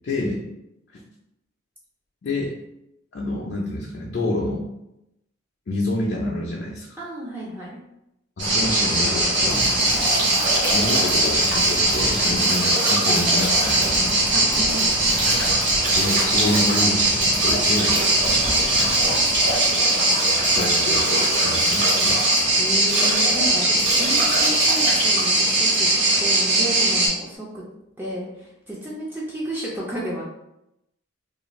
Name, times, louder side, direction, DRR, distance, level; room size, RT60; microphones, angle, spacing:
voice 1, 0.0-0.4 2.2-2.5 3.1-4.6 5.7-6.9 8.4-9.7 10.7-14.4 15.5-18.0 20.5-22.2, left 1 dB, 50° left, -4 dB, 0.4 m, -28 dB
voice 2, 7.0-7.8 12.4-12.6 14.3-15.0 22.6-25.9 26.2-27.6 28.0-30.2, right 1 dB, 10° right, -5 dB, 0.4 m, -32 dB
sound 1, 8.4-27.1, right 2 dB, 65° right, 0.9 m, -20 dB
Bathtub (filling or washing) / Drip / Trickle dribble, 9.0-26.3, right 1 dB, 40° right, 1.1 m, -29 dB
2.4 x 2.3 x 3.0 m, 0.86 s
head